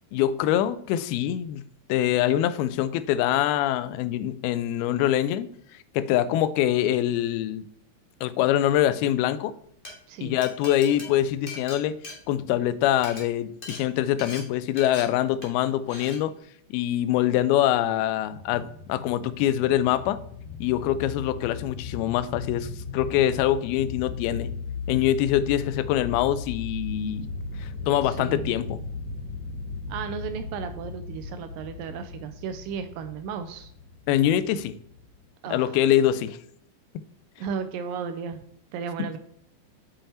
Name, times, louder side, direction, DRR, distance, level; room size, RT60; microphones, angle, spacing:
voice 1, 0.1-1.6 1.9-5.5 6.0-7.6 8.2-9.5 10.2-12.0 12.3-16.3 16.7-20.2 20.6-24.5 24.9-27.3 27.6-28.8 34.1-34.8 35.5-36.4 39.0-39.1, left 12 dB, 85° left, 14 dB, 2.5 m, -24 dB
Glass, 9.6-9.9 10.4-12.7 13.0-13.2 13.6-13.8 14.2-14.4 14.8-15.0 15.4-15.6 15.9-16.2, left 2 dB, 35° left, 0.8 m, -40 dB
voice 2, 10.1-10.4 27.8-28.6 29.9-33.7 35.4-35.8 37.4-38.4 38.7-39.2, right 6 dB, 80° right, 9 dB, 2.1 m, -34 dB
sound 1, 18.2-35.3, left 4 dB, 65° left, 2.9 m, -37 dB
7.0 x 5.5 x 4.3 m, 0.70 s
omnidirectional pair, 4.3 m